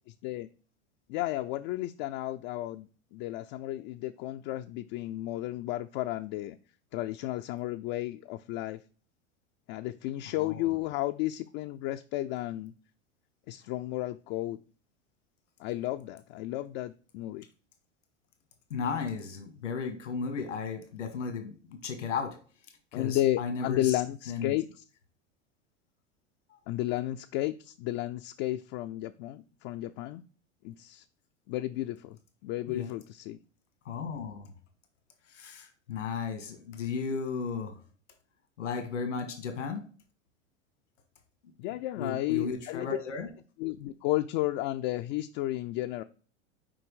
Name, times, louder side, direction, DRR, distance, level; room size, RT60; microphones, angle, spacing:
voice 1, 1.1-6.6 6.9-8.8 9.7-12.7 13.5-14.6 15.6-17.4 22.9-24.8 26.7-30.2 30.6-31.0 31.5-32.2 32.4-33.4 41.6-43.0 43.6-46.0, left 15 dB, 50° left, 0.5 m, -33 dB
voice 2, 10.4-10.7 18.7-22.4 22.9-24.0 24.3-24.5 26.5-26.6 32.6-32.9 33.8-34.5 35.3-37.8 38.6-39.9 42.0-43.3, left 5 dB, 90° left, 1.6 m, -35 dB
6.3 x 4.7 x 4.7 m
hypercardioid pair, 100°, 35 cm